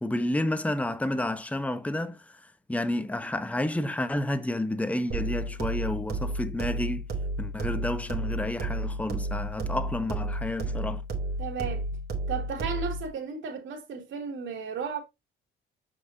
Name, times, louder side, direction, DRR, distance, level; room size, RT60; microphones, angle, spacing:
voice 1, 0.0-2.4 2.7-7.0 7.4-11.0, left 1 dB, 5° left, 1.0 m, -30 dB
sound 1, 5.1-13.1, right 1 dB, 55° right, 3.1 m, -32 dB
voice 2, 11.4-11.9 12.3-15.0, right 6 dB, 75° right, 3.1 m, -34 dB
7.6 x 6.0 x 2.8 m
cardioid pair, 90°, 20 cm